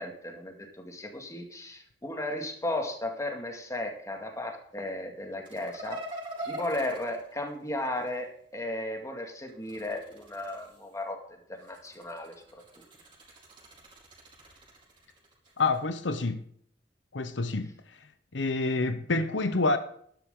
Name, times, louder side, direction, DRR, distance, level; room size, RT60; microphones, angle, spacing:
voice 1, 0.0-6.0 6.5-11.2 11.5-12.3, left 1 dB, 20° left, 2.2 m, -35 dB
sound 1, 5.4-8.2 9.5-11.0 11.6-15.8, right 1 dB, 30° right, 4.6 m, -44 dB
voice 2, 15.6-16.4 17.1-17.7 18.3-19.8, left 3 dB, 85° left, 0.9 m, -27 dB
12.0 x 10.5 x 3.8 m
head